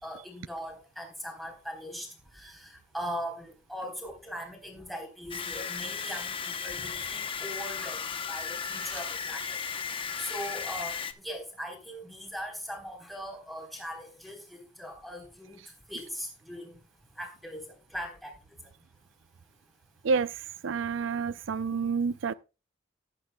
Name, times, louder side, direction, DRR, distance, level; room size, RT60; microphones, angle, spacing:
voice 1, 0.0-2.1 2.3-8.0 8.3-9.6 10.2-15.6 15.9-16.8 17.2-17.7 17.9-18.3, equal, ahead, 3.8 m, -40 dB
sound 1, 5.3-11.1, left 6 dB, 30° left, 0.8 m, -35 dB
voice 2, 20.6-22.3, right 5 dB, 80° right, 0.4 m, -28 dB
18.5 x 9.1 x 2.2 m
head